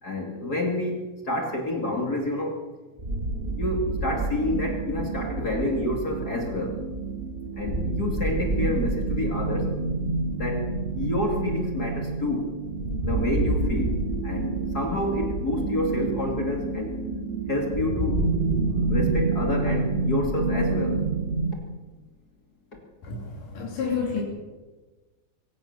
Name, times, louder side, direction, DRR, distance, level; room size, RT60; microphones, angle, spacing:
voice 1, 0.0-2.6 3.6-6.8 7.6-9.7 10.3-12.5 13.0-14.0 14.2-16.9 17.5-18.3 18.9-21.0 22.7-22.8, left 2 dB, 30° left, 1 dB, 2.6 m, -28 dB
sound 1, 3.0-21.5, right 3 dB, 20° right, 2.0 m, -28 dB
voice 2, 23.0-24.2, left 5 dB, 80° left, -1 dB, 4.6 m, -30 dB
24.0 x 16.5 x 6.7 m, 1.3 s
omnidirectional pair, 3.6 m